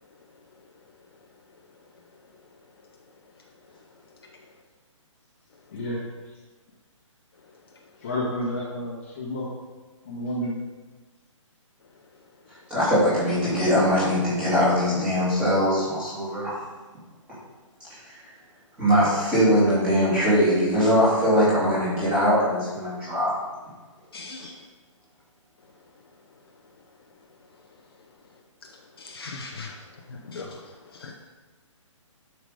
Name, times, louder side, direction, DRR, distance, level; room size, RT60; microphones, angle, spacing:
voice 1, 8.0-9.5 10.0-10.5, left 1 dB, 25° left, -5 dB, 1.6 m, -30 dB
voice 2, 12.7-16.6 17.9-18.1 18.8-23.3 24.4-24.5, equal, 5° right, -11 dB, 3.0 m, -21 dB
voice 3, 24.1-24.5 29.0-29.7 30.1-31.1, left 3 dB, 45° left, 1 dB, 1.0 m, -39 dB
11.5 x 5.9 x 5.2 m, 1.3 s
hypercardioid pair, 175°, 17 cm